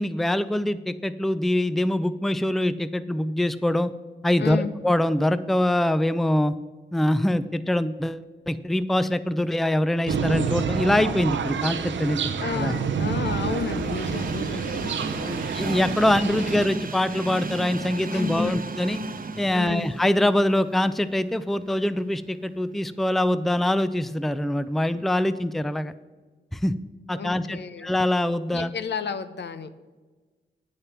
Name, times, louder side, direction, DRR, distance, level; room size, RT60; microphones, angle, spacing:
voice 1, 0.0-3.9 4.2-6.5 6.9-12.2 12.6-12.7 15.5-19.0 19.4-25.9 26.5-26.7 27.1-28.7, left 1 dB, ahead, 14 dB, 0.5 m, -24 dB
voice 2, 4.4-4.7 12.4-15.5 16.0-16.5 18.1-18.6 19.5-19.9 27.1-27.9 28.5-29.7, left 6 dB, 65° left, 11 dB, 0.7 m, -32 dB
sound 1, 10.1-16.7, right 6 dB, 75° right, 0.7 m, -28 dB
Train, 11.7-21.8 22.3-22.4 23.5-23.6, right 3 dB, 45° right, 0.9 m, -36 dB
8.9 x 6.6 x 5.9 m, 1.3 s
supercardioid pair, 40°, 20 cm